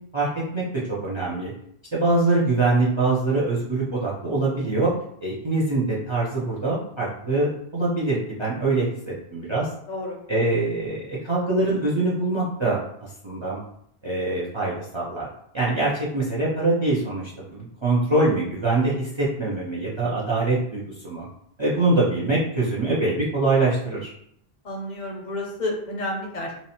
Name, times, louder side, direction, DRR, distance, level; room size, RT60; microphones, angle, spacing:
voice 1, 1.0-1.5 1.9-4.9 5.2-9.7 10.3-13.6 14.0-15.3 15.5-21.3 21.6-24.1, right 2 dB, 40° right, -5 dB, 0.4 m, -24 dB
voice 2, 9.9-10.2 24.6-26.5, left 1 dB, 55° left, 0 dB, 0.5 m, -30 dB
2.7 x 2.1 x 2.7 m, 0.71 s
omnidirectional pair, 1.0 m